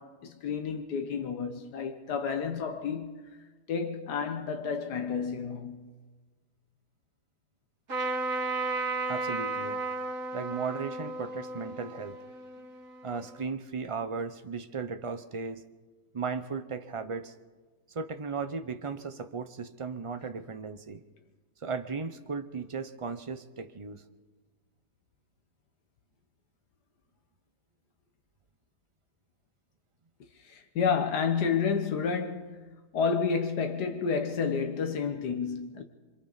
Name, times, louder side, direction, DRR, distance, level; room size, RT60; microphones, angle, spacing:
voice 1, 0.0-3.3 3.7-5.9 30.4-32.6 32.9-35.8, left 6 dB, 90° left, 1.7 m, -30 dB
Trumpet, 7.9-13.4, right 3 dB, 55° right, 3.6 m, -34 dB
voice 2, 9.1-9.8 10.3-12.2 13.0-15.6 16.1-17.3 17.9-21.0 21.6-24.0, right 5 dB, 35° right, 0.5 m, -36 dB
27.0 x 25.0 x 4.1 m
omnidirectional pair, 1.7 m